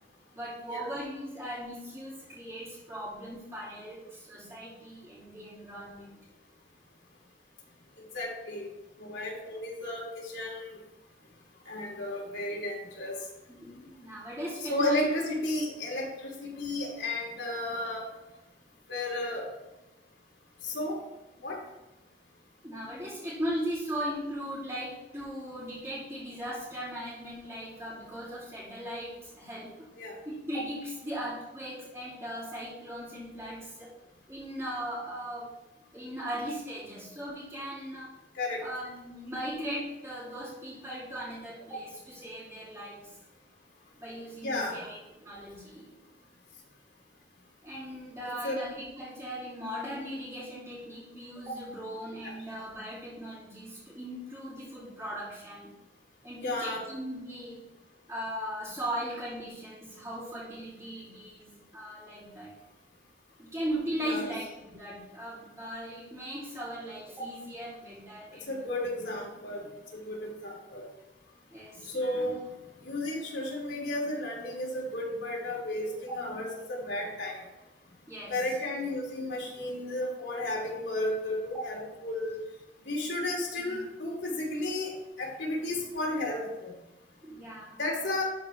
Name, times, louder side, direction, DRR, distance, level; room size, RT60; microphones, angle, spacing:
voice 1, 0.3-6.1 13.5-15.1 22.6-29.9 30.2-33.9 34.3-38.1 38.6-43.2 44.0-45.9 47.6-55.7 56.2-57.6 58.1-62.5 63.4-64.5 64.7-68.7 71.5-72.4 76.1-76.2 78.1-78.6 81.5-81.6 83.6-83.8 87.2-87.8, equal, 15° right, -12 dB, 2.9 m, -38 dB
voice 2, 8.1-8.7 9.0-10.8 11.7-13.1 14.7-18.0 18.9-19.4 20.6-21.0 21.4-21.6 30.0-30.1 38.3-38.6 44.4-44.8 48.3-48.6 52.2-52.3 56.4-56.8 64.0-64.3 68.5-69.6 69.9-70.8 71.8-72.4 72.8-77.4 78.3-82.4 82.8-84.9 85.2-86.7 87.8-88.2, left 1 dB, 70° left, -3 dB, 3.0 m, -33 dB
12.0 x 4.6 x 3.5 m, 1.0 s
head